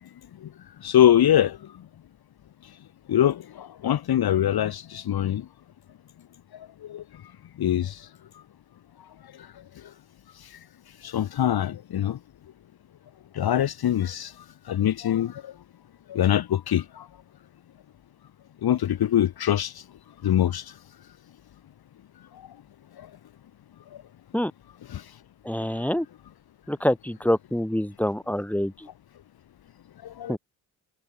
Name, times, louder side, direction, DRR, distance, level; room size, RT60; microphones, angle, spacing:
voice 1, 0.8-1.6 3.1-5.4 6.9-7.0 7.6-8.0 11.0-12.2 13.3-14.3 14.7-15.4 16.1-17.0 18.6-19.7 20.2-20.6 24.9-25.0 30.2-30.4, left 11 dB, 55° left, 1.4 m, -23 dB
voice 2, 25.4-26.1 26.7-28.9 30.3-30.4, equal, 5° left, 4.9 m, -26 dB
supercardioid pair, 55°, 46 cm